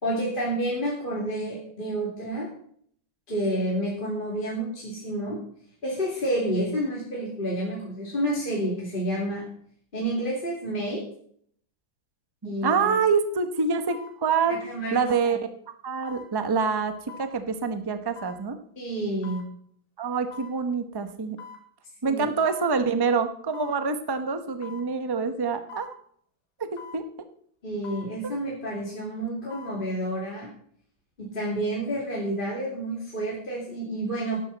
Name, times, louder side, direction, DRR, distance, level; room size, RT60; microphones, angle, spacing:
voice 1, 0.0-2.5 3.3-5.4 5.8-9.5 9.9-11.0 12.4-12.9 14.5-15.4 18.8-19.4 22.0-22.2 27.6-30.5 31.2-34.4, right 1 dB, 25° left, -4 dB, 2.8 m, -29 dB
voice 2, 12.4-14.6 14.9-15.4 15.8-16.9 17.2-18.6 20.0-21.4 22.0-25.9 26.7-27.0, right 5 dB, 30° right, 8 dB, 0.4 m, -26 dB
sound 1, 12.8-12.9 13.9-14.2 15.0-15.2 16.1-16.3 17.1-17.3 18.2-18.4 19.2-19.5 20.3-20.6 21.4-21.6 22.5-22.7 23.5-23.8 24.6-24.9 25.7-26.0 26.8-27.0 27.8-28.1 29.3-29.8 30.2-30.3, left 5 dB, 90° left, 2.7 m, -43 dB
12.5 x 11.5 x 4.1 m, 0.62 s
omnidirectional pair, 2.2 m